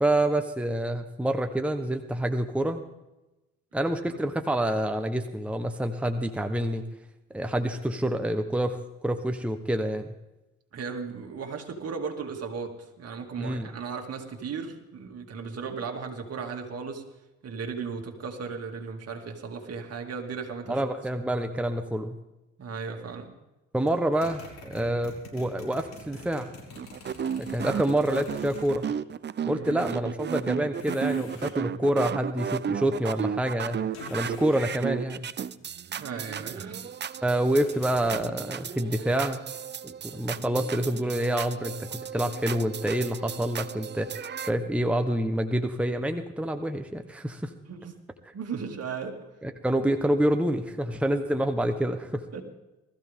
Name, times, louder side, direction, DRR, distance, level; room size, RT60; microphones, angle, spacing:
voice 1, 0.0-2.8 3.7-6.8 7.3-8.8 9.0-10.1 13.4-13.7 20.7-22.2 23.7-26.5 27.4-28.8 29.5-33.8 34.1-35.3 37.2-39.4 39.8-47.5 49.4-52.2, right 1 dB, 5° right, 6 dB, 1.1 m, -27 dB
voice 2, 10.7-17.0 17.4-20.8 22.6-23.3 29.5-29.8 35.9-36.9 47.7-48.0 48.3-49.2 52.3-52.4, right 5 dB, 55° right, 3 dB, 2.7 m, -36 dB
sound 1, 23.9-28.9 30.8-31.6 33.9-34.7 37.4-38.3, left 3 dB, 60° left, 6.6 m, -45 dB
sound 2, 26.8-44.5, right 8 dB, 35° right, 0.6 m, -34 dB
20.0 x 14.5 x 3.7 m, 1.0 s
cardioid pair, 90°, 30 cm